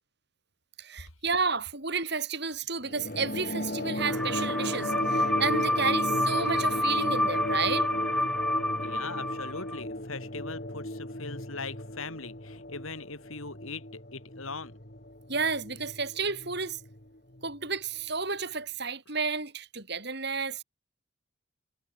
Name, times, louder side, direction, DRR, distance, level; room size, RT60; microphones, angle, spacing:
voice 1, 0.8-7.9 15.3-16.8 17.4-20.6, right 5 dB, 50° right, 6.9 m, -31 dB
sound 1, 2.9-17.7, left 1 dB, 40° left, 4.2 m, -35 dB
sound 2, 4.0-9.8, left 1 dB, 5° left, 0.5 m, -29 dB
voice 2, 8.8-14.8, left 4 dB, 75° left, 4.2 m, -40 dB
head